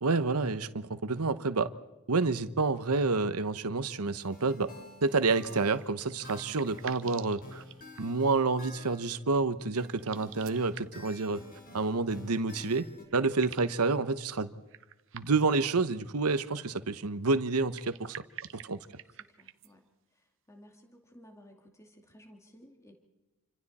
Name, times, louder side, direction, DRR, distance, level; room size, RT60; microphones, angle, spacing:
voice 1, 0.0-1.7 2.1-4.7 5.0-7.6 8.0-11.4 11.7-12.9 13.1-14.5 15.1-18.2 18.6-18.8, right 3 dB, 85° right, 12 dB, 1.0 m, -29 dB
sound 1, 4.2-9.2 9.8-13.0, left 1 dB, 40° left, 4.5 m, -51 dB
sound 2, 5.7-8.3 9.9-11.2 12.5-12.6 12.9-13.8 14.7-15.6 17.6-19.7, right 10 dB, 60° right, 0.9 m, -47 dB
voice 2, 18.5-18.9 19.2-19.8 20.1-22.9, equal, 15° left, 3 dB, 2.4 m, -57 dB
28.0 x 26.0 x 4.3 m, 1.1 s
head